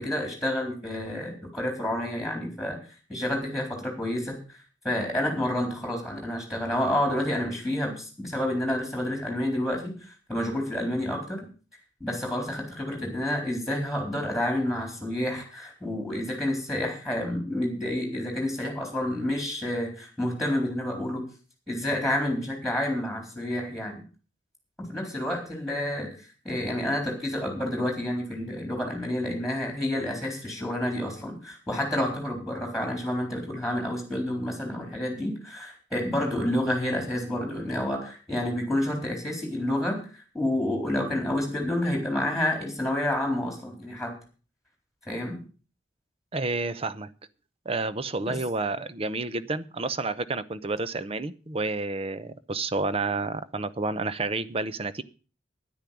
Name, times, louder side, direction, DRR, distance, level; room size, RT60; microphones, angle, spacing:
voice 1, 0.0-2.8 3.1-4.4 4.8-11.5 12.0-21.2 21.7-24.0 24.8-26.1 26.4-40.0 40.3-44.1 45.1-45.4 48.3-48.4, left 1 dB, ahead, 1 dB, 4.0 m, -29 dB
voice 2, 46.3-47.1 47.6-55.0, right 3 dB, 30° right, 14 dB, 0.7 m, -30 dB
10.5 x 9.8 x 7.0 m, 0.37 s
head